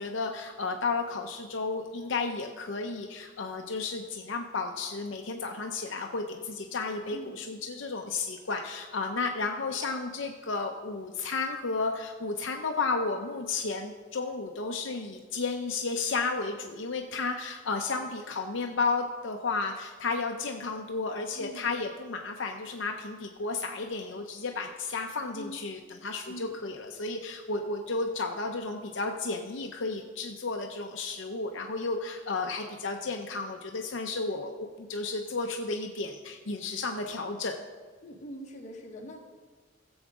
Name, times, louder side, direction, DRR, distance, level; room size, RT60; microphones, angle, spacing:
voice 1, 0.0-37.6, left 3 dB, 65° left, 3 dB, 0.7 m, -33 dB
voice 2, 21.4-21.8 25.3-25.6 26.3-26.6 38.0-39.2, equal, 35° left, 1 dB, 1.3 m, -43 dB
16.0 x 7.1 x 3.6 m, 1.3 s
head